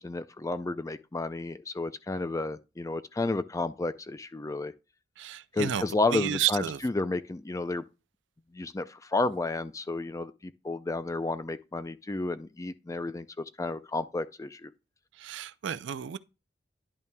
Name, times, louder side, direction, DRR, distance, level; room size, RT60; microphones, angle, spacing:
voice 1, 0.0-4.7 5.5-7.8 8.5-14.7, left 2 dB, 15° left, 0.4 m, -32 dB
voice 2, 5.2-5.8 6.1-6.8 15.2-16.2, right 10 dB, 70° right, 0.4 m, -31 dB
10.5 x 5.7 x 2.2 m
head